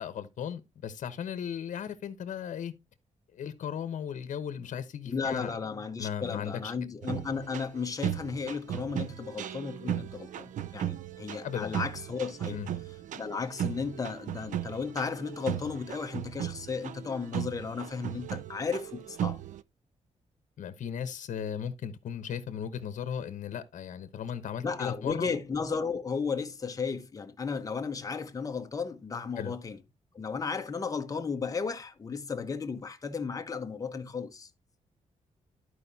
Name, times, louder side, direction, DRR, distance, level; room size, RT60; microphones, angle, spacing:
voice 1, 0.0-2.7 3.3-5.5 6.0-6.7 11.4-11.8 12.5-12.7 20.6-25.3 29.4-29.5, left 8 dB, 75° left, 1.0 m, -36 dB
voice 2, 5.1-12.6 13.1-19.4 24.6-29.8 30.1-34.5, left 5 dB, 25° left, 1.0 m, -34 dB
sound 1, 7.0-19.6, right 11 dB, 85° right, 0.5 m, -37 dB
13.0 x 4.9 x 2.7 m
wide cardioid pair, 145°, 13 cm